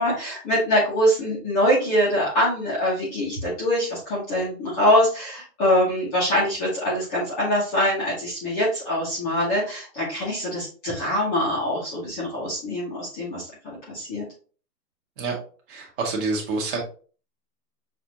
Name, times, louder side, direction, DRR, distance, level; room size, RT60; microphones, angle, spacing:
voice 1, 0.0-13.5 13.9-14.2, equal, 15° left, -7 dB, 0.7 m, -23 dB
voice 2, 15.7-16.8, right 3 dB, 30° right, 0 dB, 1.2 m, -27 dB
6.0 x 2.5 x 2.8 m, 0.39 s
hypercardioid pair, 155°, 49 cm